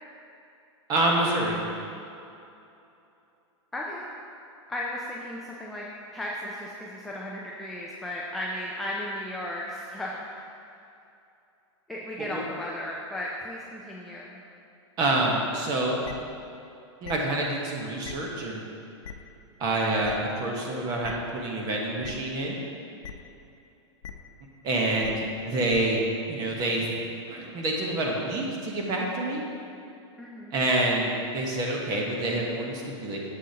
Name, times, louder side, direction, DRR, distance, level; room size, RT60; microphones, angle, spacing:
voice 1, 0.9-1.6 12.2-12.4 15.0-16.0 17.0-18.6 19.6-22.6 24.6-26.9 27.3-29.4 30.5-33.2, right 2 dB, 25° right, -1 dB, 1.1 m, -27 dB
voice 2, 3.7-4.1 4.7-5.9 6.1-10.5 11.9-14.4 30.2-30.6, left 1 dB, ahead, -4 dB, 0.3 m, -35 dB
sound 1, 16.0-16.1 17.0-17.1 18.0-18.1 19.0-19.1 20.0-20.1 21.0-21.1 22.0-22.1 23.0-23.1 24.0-24.1 25.0-25.1 25.7-25.8, left 8 dB, 90° left, 0.7 m, -38 dB
9.7 x 7.6 x 2.8 m, 2.7 s
supercardioid pair, 165°, 16 cm